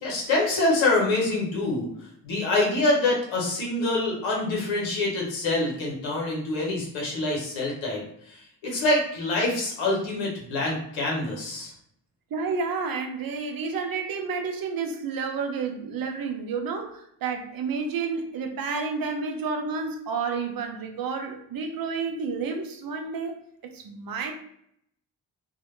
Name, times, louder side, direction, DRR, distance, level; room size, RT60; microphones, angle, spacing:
voice 1, 0.0-11.7, left 2 dB, 80° left, -3 dB, 0.9 m, -26 dB
voice 2, 12.3-23.4 23.6-24.3, right 5 dB, 50° right, 5 dB, 0.6 m, -30 dB
2.1 x 2.1 x 3.0 m, 0.72 s
hypercardioid pair, 45°, 45 cm